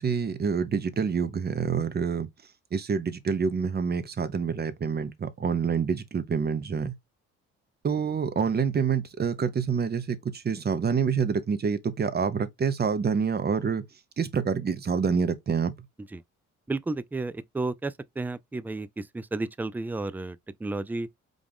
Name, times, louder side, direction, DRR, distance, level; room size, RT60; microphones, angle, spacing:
voice 1, 0.0-2.3 2.7-6.9 7.8-13.8 14.2-15.7, right 6 dB, 35° right, 0.8 m, -27 dB
voice 2, 16.7-21.1, right 2 dB, 5° right, 0.3 m, -32 dB
5.0 x 2.5 x 3.5 m
cardioid pair, 90°, 30 cm